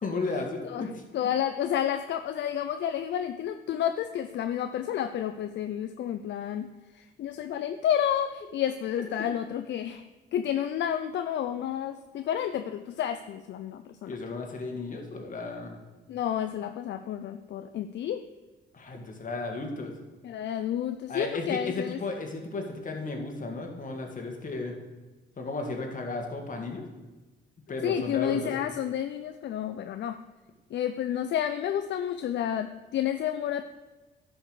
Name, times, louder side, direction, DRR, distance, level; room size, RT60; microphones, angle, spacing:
voice 1, 0.0-1.3 14.1-15.8 18.7-19.9 21.1-24.7 25.4-26.8 27.7-28.5, left 3 dB, 40° left, 3 dB, 1.9 m, -34 dB
voice 2, 1.1-6.7 6.9-10.0 10.3-14.1 16.1-18.2 20.2-22.0 27.8-30.2 30.7-33.7, left 10 dB, 65° left, 9 dB, 0.5 m, -30 dB
11.5 x 5.4 x 4.9 m, 1.2 s
cardioid pair, 90°, 20 cm